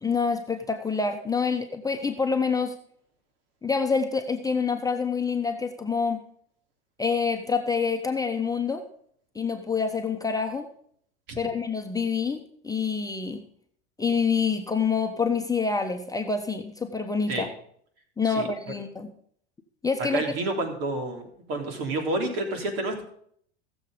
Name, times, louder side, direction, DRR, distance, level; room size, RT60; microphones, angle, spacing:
voice 1, 0.0-2.7 3.6-6.2 7.0-8.8 9.3-10.7 11.4-13.4 14.0-17.5 18.2-19.1 19.8-20.2, left 5 dB, 10° left, 5 dB, 1.0 m, -27 dB
voice 2, 20.1-23.0, right 2 dB, 60° right, 3 dB, 3.5 m, -29 dB
16.0 x 7.1 x 5.2 m, 0.64 s
hypercardioid pair, 90°, 33 cm